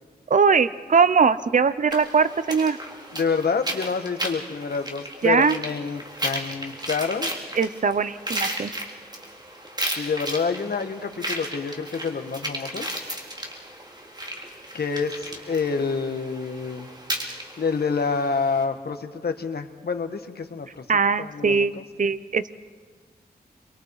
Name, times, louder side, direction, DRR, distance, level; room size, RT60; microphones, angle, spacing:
voice 1, 0.3-2.8 5.2-5.5 7.5-8.7 20.9-22.5, right 5 dB, 50° right, 14 dB, 0.8 m, -21 dB
sound 1, 1.9-18.6, right 1 dB, 25° right, 3.4 m, -34 dB
voice 2, 3.1-7.3 9.9-12.9 14.7-16.9 17.6-20.8 21.2-21.8, left 5 dB, 75° left, 6 dB, 1.7 m, -27 dB
29.5 x 24.0 x 4.9 m, 1.5 s
wide cardioid pair, 90°, 17 cm